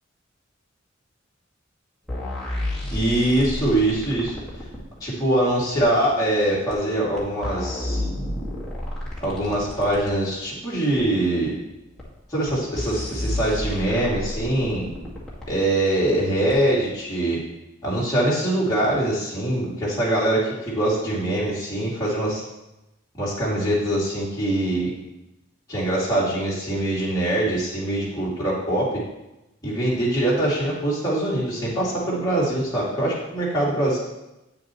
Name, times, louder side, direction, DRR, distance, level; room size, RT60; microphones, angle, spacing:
sound 1, 2.1-4.8 5.8-5.9 6.7-6.8 7.2-10.1 11.0-11.1 12.0-12.1 12.5-12.6 12.8-15.5 16.5-16.6, left 1 dB, 5° left, 1.9 m, -31 dB
voice 1, 2.9-4.4 5.0-8.0 9.2-11.5 12.3-14.8 15.5-17.4 17.8-22.4 23.2-24.9 25.7-28.9 29.6-34.0, right 1 dB, 20° left, -7 dB, 2.6 m, -23 dB
8.9 x 7.0 x 3.1 m, 0.96 s
head